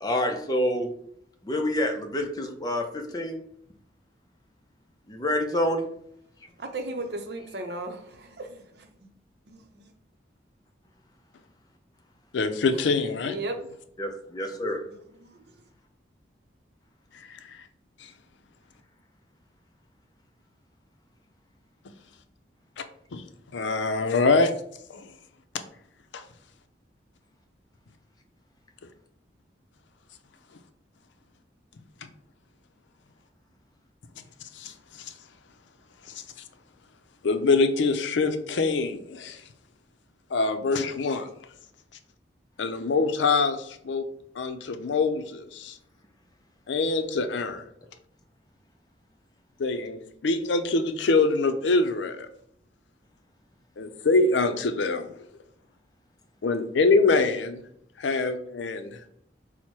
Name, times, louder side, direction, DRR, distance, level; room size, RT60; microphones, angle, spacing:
voice 1, 0.0-0.9 1.4-3.4 5.1-5.8 14.0-14.8, left 1 dB, 20° left, 0.5 m, -27 dB
voice 2, 6.6-8.9 9.5-9.9 13.3-13.6, right 2 dB, 65° right, 0.6 m, -35 dB
voice 3, 12.3-13.3 17.1-17.6 23.1-23.2 23.5-24.5 24.9-25.0 26.1-26.2 34.5-35.1 37.2-39.4 40.3-41.3 42.6-44.1 44.4-45.8 46.7-47.6 49.6-52.3 53.8-55.1 56.4-57.6 58.0-59.0, left 3 dB, 90° left, 0.5 m, -24 dB
4.3 x 2.1 x 4.5 m
head